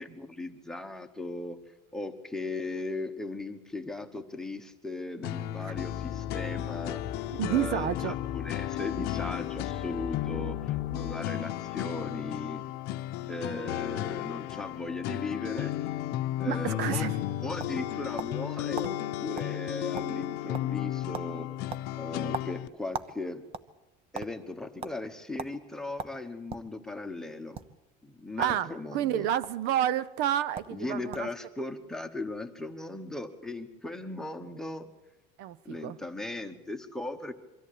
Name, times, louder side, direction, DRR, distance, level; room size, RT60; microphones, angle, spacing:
voice 1, 0.0-1.6 1.9-7.0 7.5-12.6 13.3-15.7 16.4-17.1 17.4-21.5 22.0-23.4 24.1-27.6 28.0-29.3 30.7-34.9 35.6-37.3, left 2 dB, 5° left, 1.1 m, -38 dB
sound 1, 5.2-22.7, left 13 dB, 55° left, 0.8 m, -34 dB
sound 2, 5.7-11.1, left 7 dB, 30° left, 1.0 m, -41 dB
voice 2, 7.3-8.1 16.4-17.2 28.4-31.3 35.4-36.0, right 11 dB, 60° right, 0.7 m, -30 dB
sound 3, 17.6-18.5 18.8-18.9 19.4-19.5 19.8-20.3 20.5-20.8 21.1-21.3 21.7-23.2 23.5-24.3 24.8-25.0 25.4-25.5 26.0-26.7 27.4-27.6 28.4-28.6 28.9-29.5 30.2-30.3 30.6-30.8 31.1-31.4, right 6 dB, 30° right, 0.9 m, -38 dB
24.0 x 14.0 x 8.6 m
cardioid pair, 170°, 19 cm